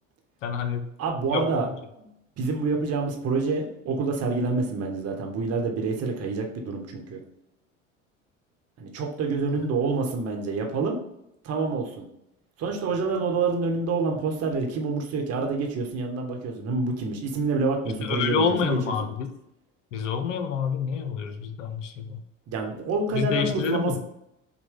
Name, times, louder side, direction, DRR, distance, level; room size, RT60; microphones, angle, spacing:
voice 1, 0.4-0.9 1.3-1.8 18.0-19.3 19.9-22.2 23.1-24.0, left 6 dB, 70° left, 7 dB, 0.6 m, -28 dB
voice 2, 1.0-1.7 2.0-2.1 2.4-7.2 8.8-11.0 11.4-12.1 12.6-19.1 22.5-24.0, right 4 dB, 40° right, 2 dB, 1.0 m, -27 dB
5.8 x 2.2 x 3.5 m, 0.82 s
figure-of-eight pair, 65°, 38 cm